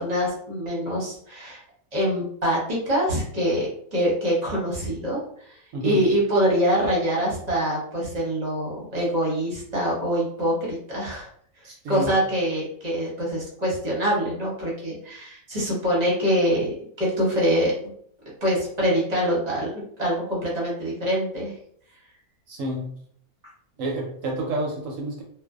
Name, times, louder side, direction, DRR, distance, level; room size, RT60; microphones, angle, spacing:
voice 1, 0.0-1.6 1.9-5.2 5.5-5.6 5.8-11.3 11.9-17.7 18.4-19.7 20.0-21.5, equal, 35° right, -5 dB, 0.8 m, -24 dB
voice 2, 5.7-6.0 11.6-12.2 22.5-22.9 23.8-25.2, right 1 dB, 70° right, -1 dB, 0.9 m, -29 dB
2.5 x 2.3 x 2.3 m, 0.62 s
omnidirectional pair, 1.6 m